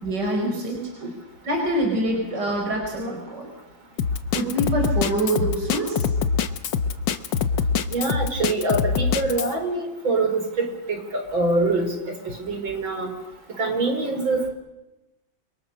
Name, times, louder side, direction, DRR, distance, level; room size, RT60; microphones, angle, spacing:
voice 1, 0.0-0.8 1.4-3.5 4.3-6.0, right 1 dB, 60° right, 1 dB, 5.5 m, -25 dB
Drum kit, 4.0-9.5, left 6 dB, 65° left, 1.8 m, -24 dB
voice 2, 7.9-12.1 12.4-13.1 13.6-14.5, right 2 dB, 80° right, 5 dB, 5.3 m, -24 dB
29.5 x 23.5 x 6.6 m, 0.98 s
omnidirectional pair, 2.1 m